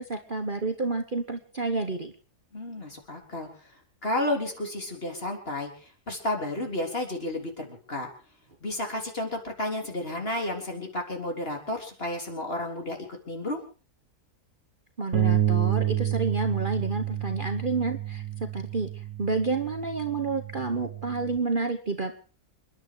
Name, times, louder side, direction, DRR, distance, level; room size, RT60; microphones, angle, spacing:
voice 1, 0.0-2.1 15.0-18.9 19.2-22.2, right 3 dB, 35° right, 5 dB, 1.3 m, -29 dB
voice 2, 2.5-3.5 4.0-8.1 8.6-13.0 13.3-13.6, left 1 dB, 40° left, 3 dB, 3.9 m, -32 dB
Bass guitar, 15.1-21.4, right 11 dB, 60° right, 1.5 m, -29 dB
28.5 x 11.0 x 4.7 m, 0.36 s
omnidirectional pair, 1.7 m